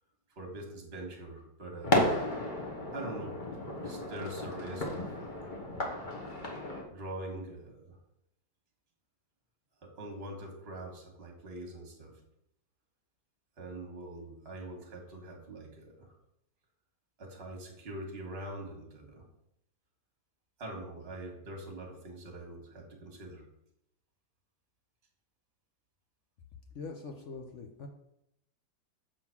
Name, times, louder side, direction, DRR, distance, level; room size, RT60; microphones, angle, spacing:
voice 1, 0.3-2.1 2.9-5.6 6.9-8.0 9.8-12.2 13.6-16.1 17.2-19.3 20.6-23.5, right 1 dB, 35° right, 1 dB, 1.7 m, -44 dB
sound 1, 1.8-6.8, left 1 dB, 35° left, 0.9 m, -33 dB
voice 2, 26.7-27.9, left 4 dB, 70° left, 3 dB, 0.7 m, -43 dB
7.1 x 3.8 x 5.9 m, 0.79 s
omnidirectional pair, 2.1 m